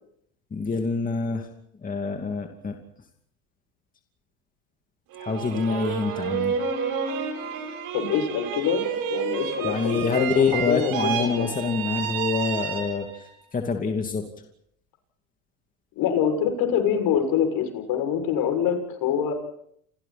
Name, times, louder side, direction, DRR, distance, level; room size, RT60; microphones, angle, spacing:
voice 1, 0.5-1.5 1.8-2.8 5.2-6.6 9.6-14.3, left 4 dB, 20° left, 3 dB, 2.6 m, -26 dB
sound 1, 5.1-13.3, right 7 dB, 55° right, 7.5 m, -30 dB
voice 2, 7.9-11.5 16.0-19.3, left 8 dB, 55° left, 7 dB, 6.9 m, -25 dB
29.5 x 28.0 x 4.4 m, 0.69 s
supercardioid pair, 115°, 41 cm